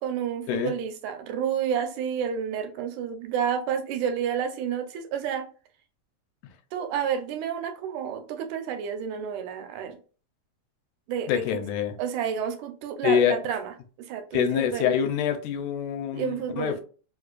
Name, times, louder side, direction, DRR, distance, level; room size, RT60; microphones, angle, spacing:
voice 1, 0.0-5.5 6.7-10.0 11.1-11.4 12.0-13.7 14.0-14.9 16.1-16.8, right 8 dB, 85° right, 2.0 m, -30 dB
voice 2, 11.3-12.0 13.0-13.4 14.3-16.8, left 8 dB, 85° left, 2.0 m, -25 dB
4.6 x 2.4 x 2.2 m
omnidirectional pair, 3.4 m